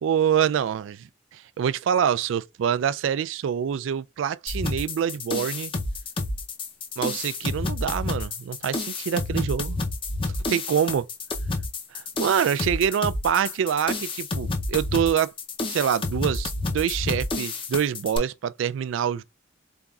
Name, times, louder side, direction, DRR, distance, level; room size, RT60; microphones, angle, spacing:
voice 1, 0.0-5.7 7.0-9.8 10.5-11.1 11.9-15.3 15.7-19.2, right 8 dB, 75° right, 0.3 m, -25 dB
sound 1, 4.5-18.2, left 2 dB, 25° left, 0.6 m, -30 dB
4.1 x 3.6 x 2.3 m
head